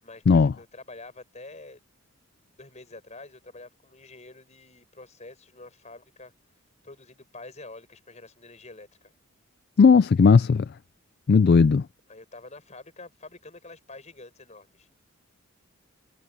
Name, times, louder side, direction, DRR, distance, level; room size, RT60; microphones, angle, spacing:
voice 1, 0.0-1.8 2.4-6.3 6.8-9.1 12.1-14.9, left 2 dB, 30° left, 6.4 m, -47 dB
voice 2, 9.8-10.6 11.3-11.8, left 5 dB, 45° left, 0.3 m, -16 dB
head